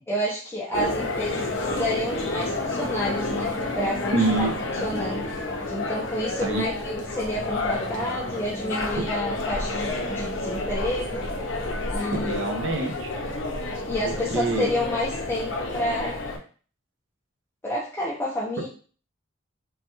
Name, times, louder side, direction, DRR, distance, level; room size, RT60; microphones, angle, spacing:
voice 1, 0.1-4.5 4.8-5.4 5.7-11.3 11.9-12.4 13.9-16.2 17.6-18.7, left 1 dB, 10° left, -6 dB, 0.5 m, -29 dB
sound 1, 0.7-16.4, left 2 dB, 70° left, 0.6 m, -30 dB
voice 2, 4.1-4.5 6.4-6.6 9.0-9.1 12.2-13.1 14.0-14.7, right 2 dB, 70° right, 2 dB, 0.7 m, -26 dB
3.4 x 2.2 x 2.8 m, 0.40 s
head